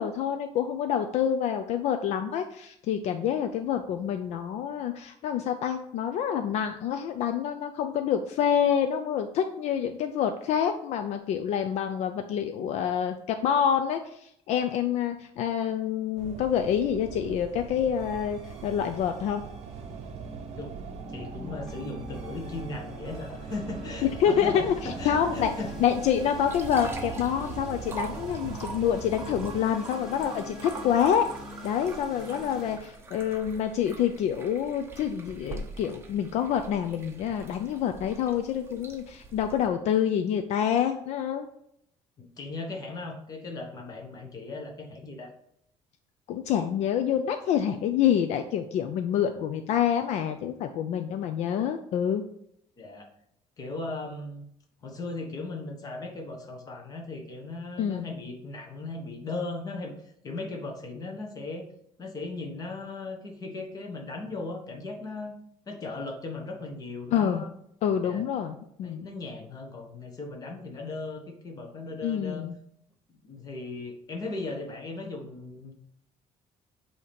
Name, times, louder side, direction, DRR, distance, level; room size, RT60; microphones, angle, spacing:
voice 1, 0.0-19.4 24.2-25.5 25.8-31.3 31.6-41.5 46.3-52.2 57.8-58.2 67.1-67.4 67.8-69.1 72.0-72.5, left 9 dB, 60° left, 7 dB, 0.4 m, -27 dB
sound 1, 16.2-29.6, right 6 dB, 60° right, 0.6 m, -41 dB
sound 2, 18.0-32.8, equal, ahead, 1.8 m, -44 dB
voice 2, 21.1-25.7 42.2-45.3 52.8-53.1 53.6-54.4 54.8-61.7 62.0-65.3 65.7-67.5 68.0-68.2 68.8-72.5 73.2-75.7, left 3 dB, 30° left, 3 dB, 1.0 m, -37 dB
sound 3, 25.4-39.7, right 3 dB, 20° right, 0.7 m, -44 dB
8.3 x 2.8 x 5.1 m, 0.74 s
cardioid pair, 170°, 13 cm